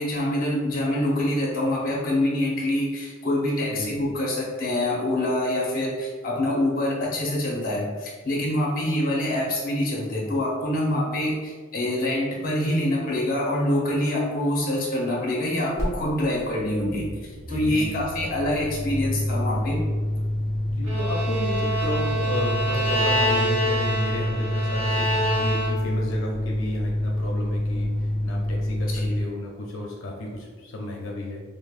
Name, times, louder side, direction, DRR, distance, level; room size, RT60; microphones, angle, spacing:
voice 1, 0.0-19.8 28.9-29.1, left 1 dB, 45° left, -3 dB, 0.8 m, -25 dB
sound 1, 15.8-15.9 16.1-29.2, left 1 dB, 15° left, 0.8 m, -27 dB
voice 2, 17.5-18.0 20.7-31.4, left 1 dB, 85° left, -1 dB, 0.5 m, -32 dB
Bowed string instrument, 20.8-26.0, equal, 85° right, 0.9 m, -26 dB
5.2 x 2.1 x 2.4 m, 1.5 s
head